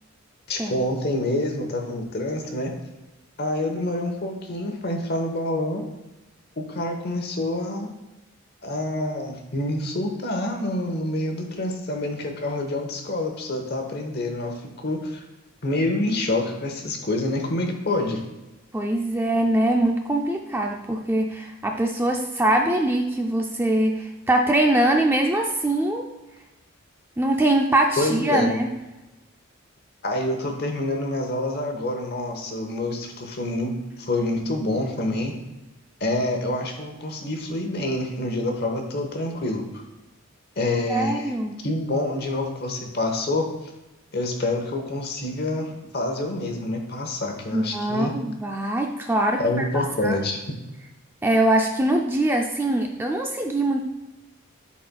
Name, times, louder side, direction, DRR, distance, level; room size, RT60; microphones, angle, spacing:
voice 1, 0.5-2.8 3.4-5.8 6.6-7.9 8.6-14.6 14.8-15.2 15.6-18.2 28.0-28.6 30.0-33.7 34.1-35.3 36.0-39.6 40.6-41.3 41.6-43.5 44.1-48.1 49.4-50.4, left 1 dB, 50° left, 3 dB, 1.0 m, -27 dB
voice 2, 18.7-26.0 27.2-28.7 40.9-41.5 47.5-50.2 51.2-53.8, right 1 dB, 10° right, 2 dB, 0.4 m, -23 dB
11.5 x 4.2 x 2.2 m, 1.0 s
head